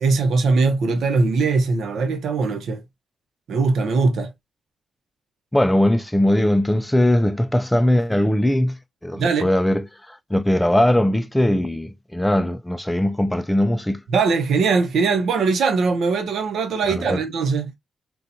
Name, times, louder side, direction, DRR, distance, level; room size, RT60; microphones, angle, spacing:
voice 1, 0.0-2.8 3.5-4.3 9.1-9.5 14.1-17.7, right 4 dB, 85° right, 0.7 m, -20 dB
voice 2, 5.5-8.8 9.0-14.0 16.9-17.2, left 1 dB, 5° left, 0.3 m, -20 dB
4.1 x 2.3 x 2.6 m
wide cardioid pair, 135°, 0 cm